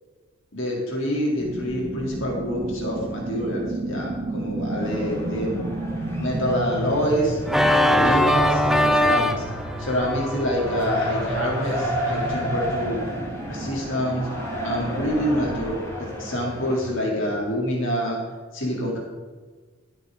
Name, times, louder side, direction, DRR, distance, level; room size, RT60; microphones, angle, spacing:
voice 1, 0.5-5.6 6.2-7.4 7.9-9.4 9.8-13.1 13.5-14.3 14.6-18.2 18.5-19.0, equal, 60° left, -3 dB, 4.2 m, -26 dB
sound 1, 1.4-15.8, right 2 dB, 35° right, 1.0 m, -32 dB
sound 2, 4.8-16.9, equal, 15° left, 4.4 m, -33 dB
Organ, 7.5-12.3, left 1 dB, ahead, 0.5 m, -22 dB
15.0 x 9.7 x 4.3 m, 1.4 s
head